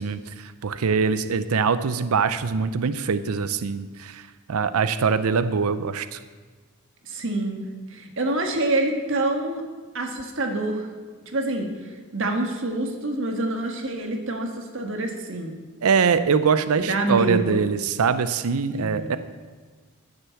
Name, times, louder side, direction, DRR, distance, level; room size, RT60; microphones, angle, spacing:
voice 1, 0.0-4.2 4.5-6.2 15.8-19.2, right 5 dB, 80° right, 13 dB, 0.5 m, -23 dB
voice 2, 7.0-9.6 9.9-10.9 11.3-15.5 16.9-17.7 18.7-19.2, right 2 dB, 60° right, 4 dB, 1.6 m, -27 dB
14.0 x 6.7 x 7.1 m, 1.4 s
head